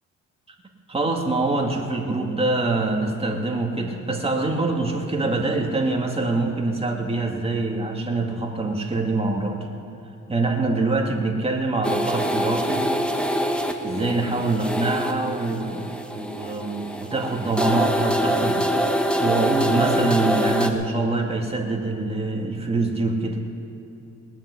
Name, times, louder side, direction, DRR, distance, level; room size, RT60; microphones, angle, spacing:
voice 1, 0.9-9.7 10.3-12.9 13.8-15.9 16.1-18.7 19.2-23.5, right 2 dB, 20° right, 1 dB, 2.5 m, -24 dB
sound 1, 11.8-20.7, equal, 5° left, 1.4 m, -25 dB
19.5 x 7.5 x 9.9 m, 3.0 s
cardioid pair, 90°, 30 cm